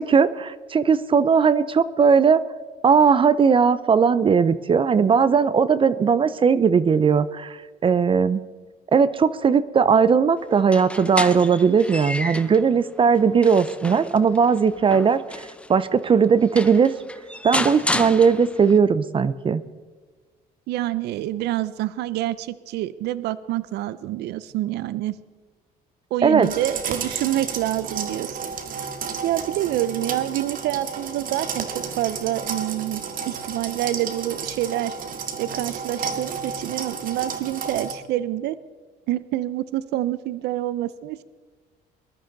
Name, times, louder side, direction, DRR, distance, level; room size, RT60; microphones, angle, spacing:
voice 1, 0.0-2.4 2.8-8.4 8.9-15.2 15.7-16.9 17.4-19.6 26.2-26.5, right 6 dB, 30° right, 16 dB, 0.6 m, -18 dB
sound 1, 10.6-12.6 13.1-15.7 16.2-16.3 16.6-18.8, left 1 dB, 5° left, 0.8 m, -31 dB
voice 2, 20.7-25.2 26.1-28.5 29.2-35.0 35.4-38.6 39.1-41.2, right 14 dB, 80° right, 17 dB, 0.5 m, -27 dB
sound 2, 26.4-37.9, right 6 dB, 55° right, 1.8 m, -32 dB
21.0 x 12.5 x 4.0 m, 1.4 s
cardioid pair, 110°, 17 cm